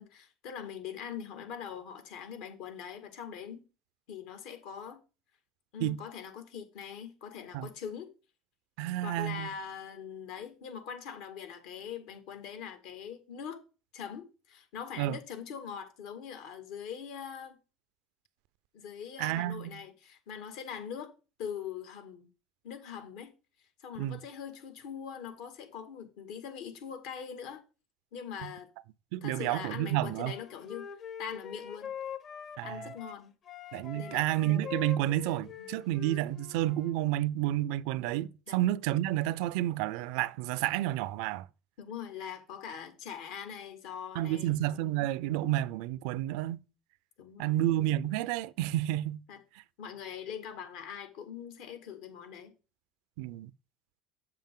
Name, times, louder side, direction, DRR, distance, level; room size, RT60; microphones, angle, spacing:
voice 1, 0.0-3.6 4.1-5.0 5.7-8.1 9.0-13.6 13.9-17.6 18.7-21.1 21.4-22.3 22.6-23.3 23.8-27.6 28.1-28.7 29.2-30.8 31.2-31.9 32.6-33.3 33.9-34.3 35.6-35.7 38.5-38.6 41.8-44.6 47.2-47.6 49.3-49.4 49.8-52.5, left 8 dB, 75° left, 1.8 m, -42 dB
voice 2, 8.8-9.5 15.0-15.1 19.2-19.7 24.0-24.2 29.1-30.3 32.6-32.8 33.7-41.5 44.2-46.6 47.4-49.2 53.2-53.5, right 14 dB, 80° right, 0.4 m, -30 dB
Wind instrument woodwind instrument, 30.3-33.2 33.5-37.0, left 8 dB, 50° left, 1.0 m, -43 dB
7.5 x 7.0 x 3.8 m
supercardioid pair, 80°, 0 cm